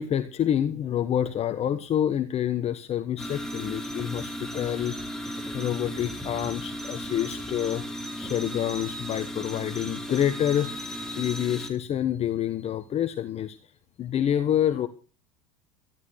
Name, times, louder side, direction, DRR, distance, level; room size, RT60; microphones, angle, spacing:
voice 1, 0.0-4.9 5.5-13.6 14.0-14.9, left 10 dB, 40° left, 10 dB, 1.3 m, -27 dB
sound 1, 3.2-11.7, equal, 5° left, 3.9 m, -35 dB
14.0 x 13.0 x 6.4 m, 0.36 s
hypercardioid pair, 90°, 17 cm